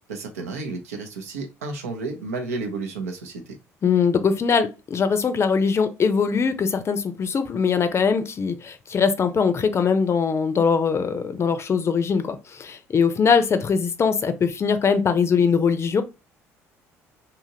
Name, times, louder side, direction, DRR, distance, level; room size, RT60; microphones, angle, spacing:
voice 1, 0.1-3.6, right 3 dB, 85° right, 0.6 m, -32 dB
voice 2, 3.8-16.0, left 6 dB, 35° left, 0.5 m, -21 dB
2.7 x 2.5 x 2.7 m
hypercardioid pair, 55°, 8 cm